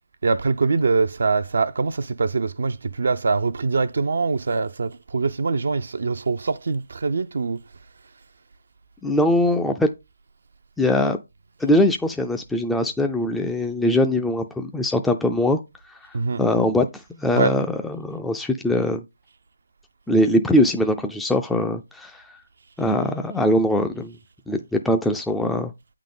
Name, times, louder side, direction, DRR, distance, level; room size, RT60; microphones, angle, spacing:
voice 1, 0.2-7.6 16.1-16.4 17.3-17.5, right 4 dB, 65° right, 0.5 m, -23 dB
voice 2, 9.0-9.9 10.8-11.2 11.6-15.6 15.9-19.0 20.1-22.3 22.8-24.2 24.5-25.7, left 1 dB, 5° left, 0.3 m, -22 dB
8.3 x 3.7 x 3.7 m
figure-of-eight pair, 155°, 0 cm